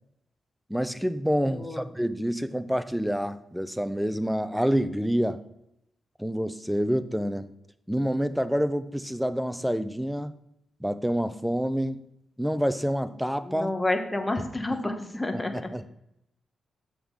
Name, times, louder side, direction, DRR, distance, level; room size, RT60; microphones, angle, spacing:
voice 1, 0.7-5.4 6.2-7.5 7.9-10.3 10.8-12.0 12.4-13.7 15.3-15.9, equal, ahead, 13 dB, 0.5 m, -27 dB
voice 2, 1.5-1.8 13.4-15.7, left 2 dB, 15° left, 5 dB, 1.2 m, -29 dB
6.8 x 3.7 x 6.4 m, 0.79 s
cardioid pair, 75°, 0 cm